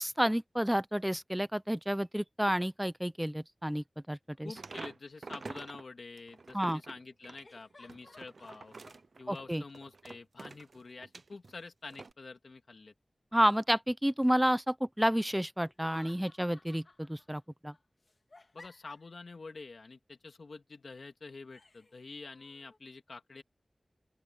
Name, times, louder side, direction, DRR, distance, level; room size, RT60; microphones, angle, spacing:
voice 1, 0.0-4.5 6.5-6.8 9.3-9.6 13.3-17.7, equal, 5° right, 0.7 m, -30 dB
voice 2, 4.4-8.8 9.2-12.9 18.5-23.4, left 3 dB, 80° left, 2.5 m, -48 dB
sound 1, 4.5-5.8 6.2-11.5 11.9-12.1, right 3 dB, 75° right, 0.7 m, -47 dB
sound 2, 7.4-9.0 15.7-17.4 17.7-19.3 21.5-22.8, left 2 dB, 55° left, 2.8 m, -58 dB
open air
wide cardioid pair, 55°, 0 cm